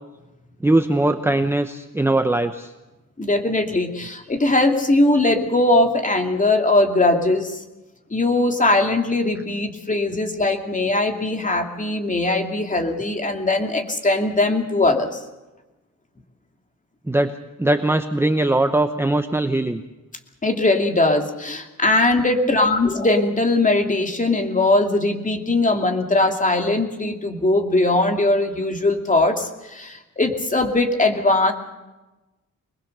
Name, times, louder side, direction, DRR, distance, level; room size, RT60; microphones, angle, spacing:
voice 1, 0.6-2.7 17.1-17.3 17.6-19.8, right 2 dB, 5° right, 7 dB, 0.8 m, -20 dB
voice 2, 3.2-7.6 8.1-15.2 20.4-31.5, left 2 dB, 25° left, 3 dB, 2.7 m, -20 dB
24.0 x 21.0 x 6.7 m, 1.1 s
wide cardioid pair, 140°, 33 cm